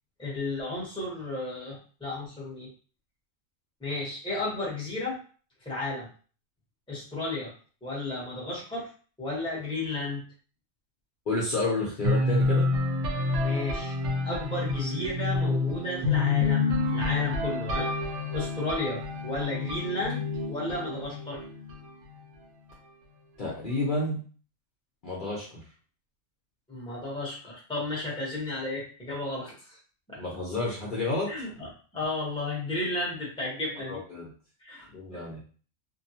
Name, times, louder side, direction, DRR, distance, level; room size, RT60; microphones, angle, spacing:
voice 1, 0.2-2.7 3.8-5.2 5.6-6.1 6.9-7.5 7.8-8.9 9.2-10.2 13.4-14.0 14.2-17.9 18.3-21.4 26.7-29.8 30.1-30.2 31.3-31.7 31.9-34.0 34.6-35.2, left 2 dB, 5° left, -5 dB, 0.8 m, -33 dB
voice 2, 11.3-12.6 23.4-24.2 25.0-25.5 30.2-31.3 33.9-34.3 34.9-35.4, left 2 dB, 50° left, -6 dB, 0.8 m, -30 dB
sound 1, 12.0-21.9, left 3 dB, 75° right, 0.9 m, -28 dB
2.7 x 2.2 x 2.7 m, 0.40 s
omnidirectional pair, 1.3 m